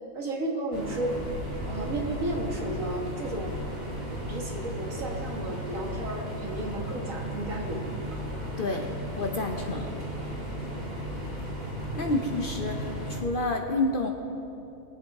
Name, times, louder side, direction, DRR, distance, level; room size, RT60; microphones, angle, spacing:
voice 1, 0.1-1.1 1.7-3.6 4.1-8.2, right 1 dB, 70° right, -1 dB, 2.0 m, -33 dB
sound 1, 0.7-13.2, equal, 45° right, 2.7 m, -35 dB
voice 2, 9.2-10.0 12.0-14.1, left 2 dB, 45° left, 3 dB, 0.8 m, -29 dB
21.0 x 7.8 x 3.6 m, 2.8 s
omnidirectional pair, 1.4 m